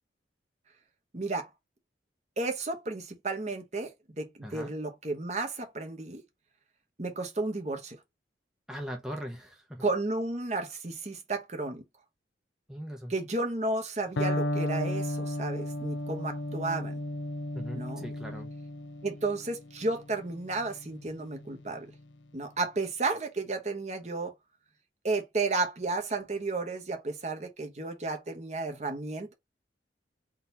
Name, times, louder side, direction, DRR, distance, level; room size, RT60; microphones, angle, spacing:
voice 1, 1.1-1.5 2.4-3.9 4.2-6.2 7.0-8.0 9.8-11.8 13.1-16.9 17.7-18.0 19.0-21.9 22.3-24.3 25.0-29.3, right 3 dB, 40° right, 0.9 m, -32 dB
voice 2, 4.4-4.7 8.7-9.9 12.7-13.1 17.5-18.5, equal, 5° right, 0.6 m, -40 dB
Electric guitar, 14.2-22.0, left 1 dB, 80° left, 0.5 m, -35 dB
3.8 x 2.8 x 4.1 m
head